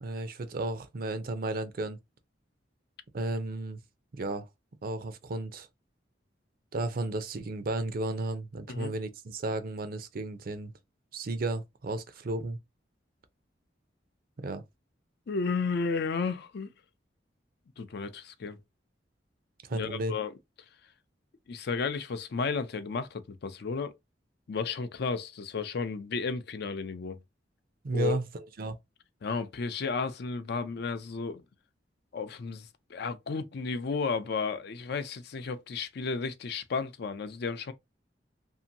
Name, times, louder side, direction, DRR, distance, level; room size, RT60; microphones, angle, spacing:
voice 1, 0.0-2.0 3.1-3.8 4.1-4.5 4.8-5.7 6.7-10.7 11.1-12.6 14.4-14.6 19.6-20.1 27.8-28.2 28.6-28.8, right 2 dB, 55° right, 0.5 m, -33 dB
voice 2, 15.3-16.7 17.8-18.6 19.7-20.3 21.5-23.9 24.5-27.2 27.9-28.2 29.2-31.4 32.1-37.7, left 4 dB, 60° left, 0.5 m, -33 dB
2.7 x 2.5 x 2.6 m
head